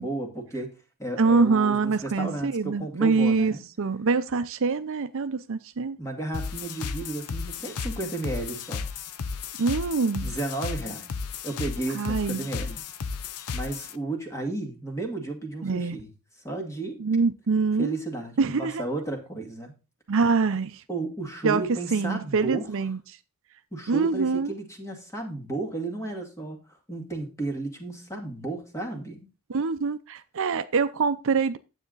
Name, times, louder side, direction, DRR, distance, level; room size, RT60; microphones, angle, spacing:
voice 1, 0.0-3.6 6.0-8.9 10.2-11.1 11.4-12.8 13.5-16.1 16.4-17.0 17.8-19.7 20.9-22.7 23.7-29.3, right 2 dB, 15° left, 2.1 m, -33 dB
voice 2, 1.2-6.0 9.6-10.3 11.9-12.5 15.6-16.0 17.0-17.9 18.4-18.8 20.1-20.8 21.4-21.6 21.9-23.0 23.9-24.5 29.5-31.6, right 4 dB, 65° right, 0.6 m, -24 dB
sound 1, 6.3-13.9, left 5 dB, 85° left, 0.7 m, -34 dB
9.8 x 7.9 x 3.9 m
head